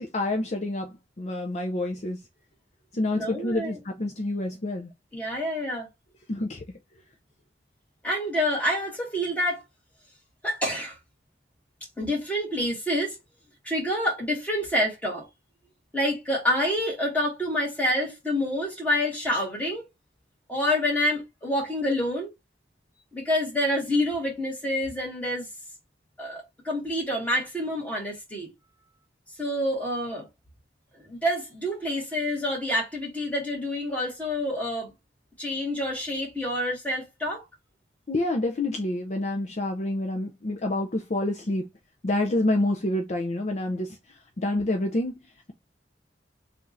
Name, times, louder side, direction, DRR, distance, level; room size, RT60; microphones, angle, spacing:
voice 1, 0.0-2.2 2.9-4.9 6.3-6.6 38.1-41.7 42.0-45.5, left 1 dB, 40° left, 0.5 m, -28 dB
voice 2, 3.1-3.8 5.1-5.9 8.0-9.6 10.4-11.0 12.0-13.2 13.6-15.2 15.9-19.8 20.5-22.3 23.1-25.5 26.2-28.5 29.4-30.3 31.0-34.9 35.4-37.4, left 1 dB, 10° left, 1.6 m, -27 dB
3.5 x 2.5 x 3.9 m
head